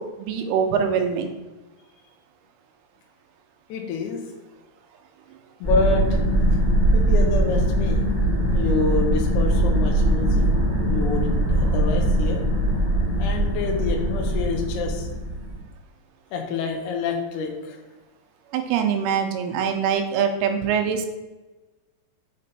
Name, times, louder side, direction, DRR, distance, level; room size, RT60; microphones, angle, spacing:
voice 1, 0.0-1.3 18.5-21.1, right 7 dB, 80° right, 6 dB, 2.5 m, -23 dB
voice 2, 3.7-4.2 5.6-6.2 6.9-8.0 8.5-10.5 10.9-12.4 13.2-15.1 16.3-17.8, left 4 dB, 85° left, 3 dB, 1.7 m, -27 dB
sound 1, 5.6-15.6, right 1 dB, 25° left, 1.2 m, -21 dB
5.3 x 5.0 x 4.3 m, 1.1 s
omnidirectional pair, 4.7 m